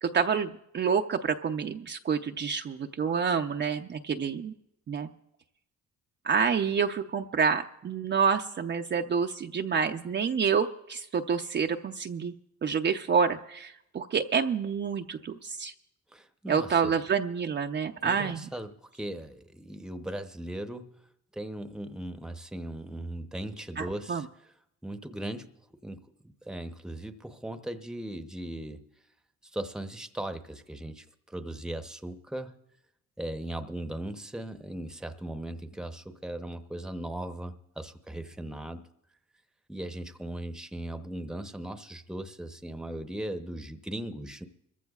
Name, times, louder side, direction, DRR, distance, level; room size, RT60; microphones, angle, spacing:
voice 1, 0.0-4.5 4.9-5.1 6.2-12.3 12.6-15.7 16.5-18.5 23.8-24.3, right 6 dB, 35° right, 5 dB, 0.5 m, -28 dB
voice 2, 16.1-17.0 18.0-20.9 21.3-24.3 24.8-25.5 25.8-28.8 29.5-32.5 33.2-38.8 39.7-44.5, right 1 dB, ahead, 8 dB, 0.8 m, -38 dB
25.0 x 14.5 x 2.4 m, 0.81 s
cardioid pair, 90°, 30 cm